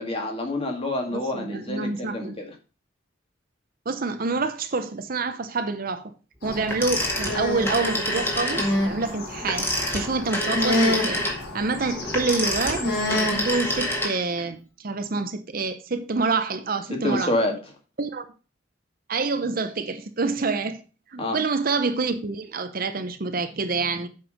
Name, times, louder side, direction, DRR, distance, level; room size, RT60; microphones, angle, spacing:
voice 1, 0.0-2.5 16.9-17.5 21.2-21.4, left 1 dB, 30° left, 2.1 m, -27 dB
voice 2, 1.1-2.4 3.9-6.1 6.4-11.2 11.5-17.3 18.0-18.2 19.1-20.8 21.1-24.1, right 3 dB, 50° right, 0.7 m, -27 dB
sound 1, 6.4-14.0, left 1 dB, 60° left, 4.2 m, -28 dB
Telephone, 6.7-8.8 9.4-14.4, left 1 dB, 10° left, 1.9 m, -27 dB
7.9 x 5.4 x 5.3 m
head